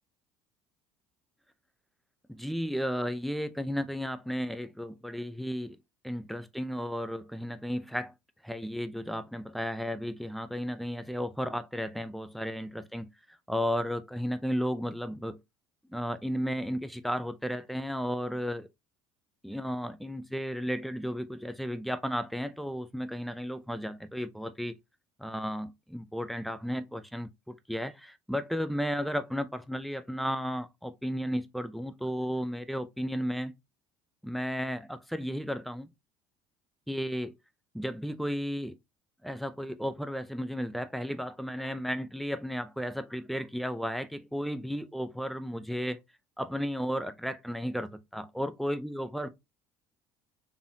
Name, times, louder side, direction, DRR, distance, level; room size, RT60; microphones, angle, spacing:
voice 1, 2.3-5.8 6.0-8.1 8.4-15.4 15.9-18.7 19.4-24.8 25.2-33.5 34.2-35.9 36.9-37.3 37.7-38.8 39.2-46.0 46.4-49.3, equal, ahead, 0.6 m, -34 dB
4.2 x 3.4 x 2.8 m
hypercardioid pair, 65°, 16 cm